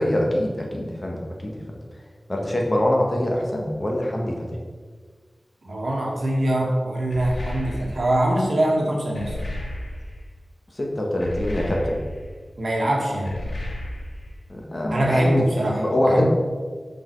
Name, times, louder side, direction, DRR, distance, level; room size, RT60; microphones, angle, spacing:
voice 1, 0.0-1.6 2.3-4.4 10.7-12.0 14.5-15.4 15.8-16.2, left 1 dB, 35° left, -1 dB, 1.6 m, -24 dB
voice 2, 5.6-9.3 12.6-13.3 14.9-16.2, right 1 dB, 70° right, -2 dB, 1.9 m, -23 dB
sound 1, 7.1-8.2 9.2-10.2 11.2-12.3 13.3-14.3, left 1 dB, 90° left, 2.1 m, -32 dB
7.9 x 5.6 x 4.7 m, 1.5 s
wide cardioid pair, 85°, 0 cm